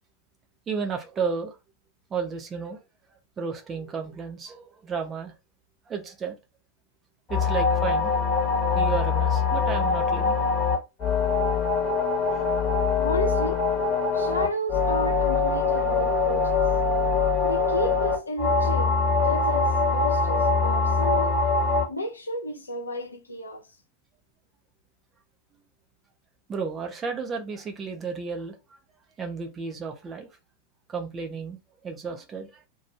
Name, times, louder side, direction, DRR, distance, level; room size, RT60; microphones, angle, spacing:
voice 1, 0.7-1.6 2.1-2.8 3.4-5.3 5.9-6.4 7.3-8.1 8.7-10.4 12.3-12.4 26.5-28.8 29.2-30.3 30.9-32.6, right 5 dB, 20° right, 0.7 m, -32 dB
sound 1, 7.3-21.8, left 4 dB, 25° left, 1.1 m, -23 dB
voice 2, 13.0-16.7 17.4-19.0 19.2-21.4 21.9-23.6, left 1 dB, 80° left, 0.6 m, -32 dB
2.5 x 2.3 x 3.2 m
figure-of-eight pair, 90°, 0 cm